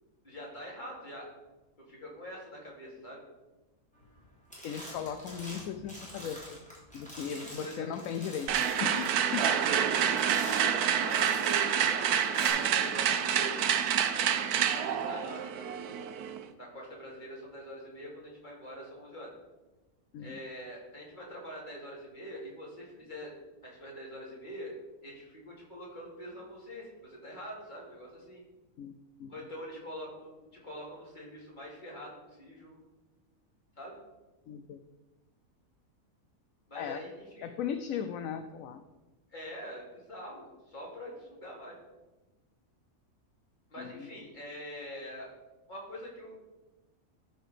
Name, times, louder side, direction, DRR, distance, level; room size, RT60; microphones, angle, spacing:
voice 1, 0.2-1.3 1.9-3.2 7.3-7.9 9.3-10.0 10.5-13.6 14.4-16.1 16.6-19.3 20.2-23.3 23.6-24.7 25.0-28.4 29.3-32.8 33.8-34.0 36.7-37.5 39.3-41.8 43.7-45.3 45.7-46.4, equal, 30° left, -4 dB, 2.7 m, -44 dB
sound 1, 4.0-4.2 4.5-11.7 12.2-12.5, equal, 5° left, 3.2 m, -46 dB
voice 2, 4.6-6.6 6.9-8.5 8.8-9.5 10.3-10.6 20.1-20.4 28.8-28.9 29.2-29.3 34.5-34.8 36.7-37.0 37.4-38.8 43.8-44.1, left 8 dB, 70° left, 8 dB, 0.9 m, -37 dB
sound 2, 8.5-16.4, right 8 dB, 90° right, 1.2 m, -28 dB
13.0 x 4.7 x 5.0 m, 1.1 s
omnidirectional pair, 1.6 m